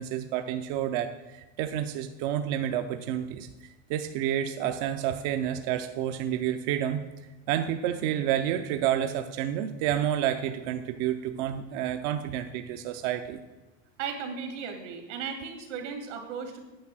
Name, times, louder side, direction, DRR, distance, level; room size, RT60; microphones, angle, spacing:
voice 1, 0.0-3.5 3.9-7.0 7.5-13.4, right 10 dB, 40° right, 7 dB, 0.5 m, -29 dB
voice 2, 14.0-16.6, right 6 dB, 80° right, 4 dB, 2.3 m, -36 dB
9.5 x 6.5 x 6.0 m, 1.1 s
supercardioid pair, 170°, 35 cm